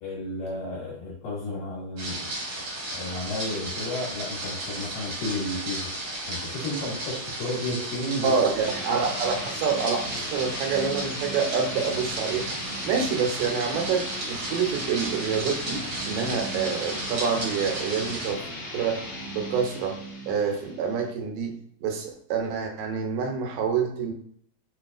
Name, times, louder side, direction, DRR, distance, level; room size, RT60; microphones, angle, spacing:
voice 1, 0.0-2.3 2.9-5.9 6.2-8.3 12.9-13.0, left 1 dB, 85° left, -5 dB, 3.0 m, -32 dB
sound 1, 2.0-18.3, right 1 dB, 60° right, 1.2 m, -34 dB
voice 2, 8.2-12.5 12.9-14.0 14.3-18.4 18.7-19.0 19.4-24.1, right 6 dB, 90° right, 3 dB, 2.4 m, -27 dB
sound 2, 8.6-21.1, equal, 60° left, 1.4 m, -37 dB
5.9 x 2.3 x 2.4 m, 0.64 s
omnidirectional pair, 3.9 m